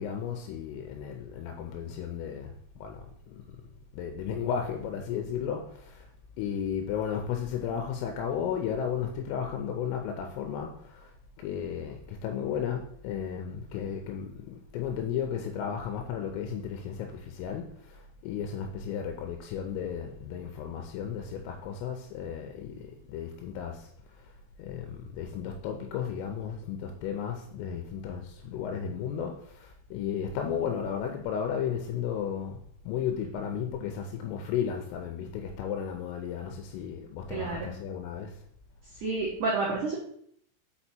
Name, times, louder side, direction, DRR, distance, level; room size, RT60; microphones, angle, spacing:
voice 1, 0.0-2.5 2.8-3.0 3.3-3.4 3.9-6.1 6.4-11.1 11.4-22.8 23.1-23.9 24.6-32.6 32.9-38.3, left 8 dB, 85° left, 3.2 m, -34 dB
voice 2, 37.3-37.7 38.9-40.0, right 3 dB, 85° right, 1.8 m, -30 dB
6.6 x 5.5 x 4.3 m
omnidirectional pair, 6.0 m